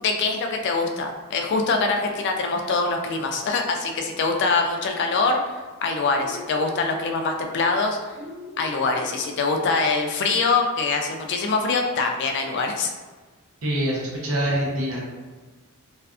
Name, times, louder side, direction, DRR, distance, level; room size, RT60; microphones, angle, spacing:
voice 1, 0.0-8.0 8.6-12.9, left 3 dB, 55° left, 3 dB, 0.3 m, -24 dB
sound 1, 6.1-7.0 8.1-9.0, left 2 dB, 45° right, 0.6 m, -41 dB
voice 2, 13.6-15.1, right 1 dB, 80° right, -4 dB, 0.7 m, -25 dB
2.4 x 2.3 x 2.4 m, 1.3 s
head